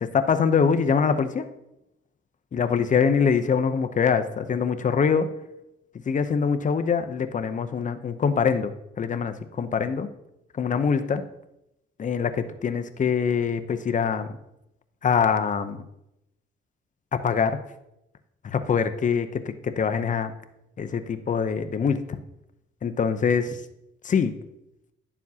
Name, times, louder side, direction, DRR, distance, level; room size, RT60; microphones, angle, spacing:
voice 1, 0.0-1.5 2.5-5.3 6.1-8.7 9.0-10.1 10.6-11.2 12.0-14.4 15.0-15.8 17.1-17.6 18.4-20.3 20.8-22.0 22.8-23.6 24.0-24.3, left 6 dB, 40° left, 9 dB, 0.7 m, -24 dB
10.5 x 7.1 x 2.8 m, 0.86 s
cardioid pair, 90°, 20 cm